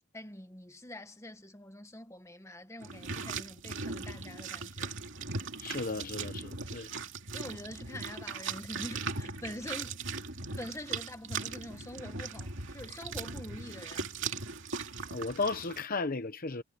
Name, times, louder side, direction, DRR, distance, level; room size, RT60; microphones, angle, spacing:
voice 1, 0.1-4.9 7.3-10.0 10.6-14.1, left 1 dB, 15° left, 1.5 m, -45 dB
sound 1, 2.8-15.8, right 4 dB, 60° right, 2.7 m, -39 dB
voice 2, 5.6-6.9 15.1-16.6, left 3 dB, 40° left, 0.9 m, -35 dB
head